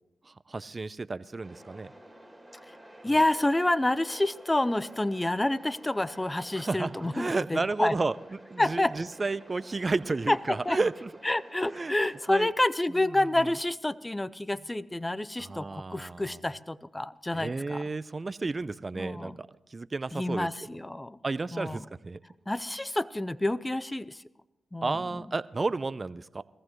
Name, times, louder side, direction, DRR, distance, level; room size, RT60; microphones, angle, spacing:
voice 1, 0.5-1.9 6.6-8.1 8.5-11.1 11.7-11.9 12.3-12.5 15.5-16.4 17.3-20.5 21.2-22.2 24.8-26.4, right 3 dB, 40° right, 16 dB, 0.5 m, -32 dB
sound 1, 1.4-12.5, right 1 dB, 10° right, 2.4 m, -51 dB
voice 2, 3.0-7.9 8.6-9.0 10.3-10.8 11.2-17.8 18.9-19.4 20.1-21.2 21.5-21.9 22.5-24.2 24.7-25.2, left 1 dB, 15° left, 17 dB, 0.6 m, -28 dB
20.0 x 14.5 x 3.1 m, 0.95 s
supercardioid pair, 40°, 0 cm